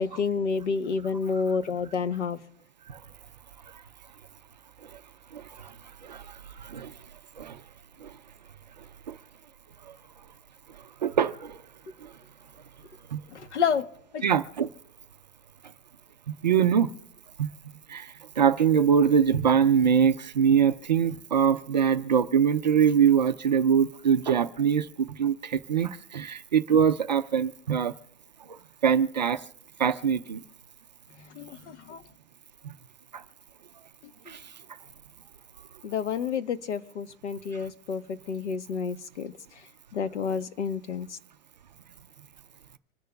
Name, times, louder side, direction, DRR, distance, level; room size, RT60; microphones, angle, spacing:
voice 1, 0.0-2.4 13.3-13.9 14.1-14.2 31.3-32.0 35.8-39.3 39.9-41.2, left 6 dB, 70° left, 1.2 m, -29 dB
voice 2, 5.3-5.7 6.0-6.9 7.4-7.6 8.0-8.1 9.1-9.2 11.0-11.6 12.0-12.1 13.1-13.2 14.2-14.7 16.4-16.9 17.4-17.5 17.9-27.9 28.4-29.4 29.8-30.4 32.6-32.7 33.1-33.2 34.3-34.4, right 7 dB, 40° right, 0.4 m, -24 dB
26.0 x 10.5 x 2.3 m
hypercardioid pair, 175°, 36 cm